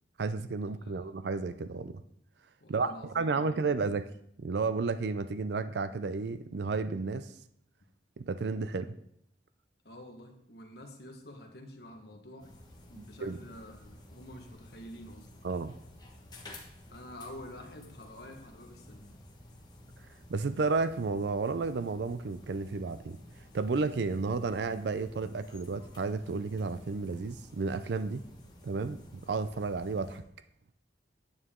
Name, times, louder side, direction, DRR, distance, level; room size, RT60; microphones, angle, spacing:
voice 1, 0.2-2.0 2.7-4.1 4.4-7.3 8.2-9.0 12.9-13.4 15.4-15.7 20.3-23.2 23.5-28.2 28.6-29.0 29.3-30.2, right 4 dB, 70° right, 12 dB, 0.4 m, -32 dB
voice 2, 0.8-1.1 2.6-3.8 9.8-12.5 12.9-15.3 16.8-19.1, left 1 dB, 65° left, 3 dB, 1.5 m, -48 dB
sound 1, 12.4-30.2, left 1 dB, 25° left, 1.2 m, -53 dB
9.6 x 8.7 x 3.7 m, 0.72 s
head